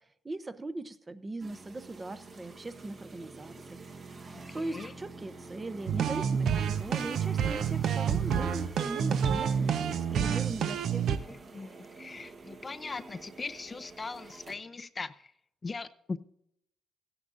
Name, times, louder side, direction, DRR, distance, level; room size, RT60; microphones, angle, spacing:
voice 1, 0.0-3.8 4.5-11.1, right 2 dB, 25° right, 0.7 m, -40 dB
sound 1, 1.4-14.6, right 3 dB, 45° right, 1.2 m, -48 dB
sound 2, 5.9-11.2, right 7 dB, 70° right, 0.6 m, -28 dB
voice 2, 11.5-15.1 15.6-16.2, left 4 dB, 30° left, 0.5 m, -39 dB
15.5 x 9.8 x 2.5 m
cardioid pair, 90°, 0 cm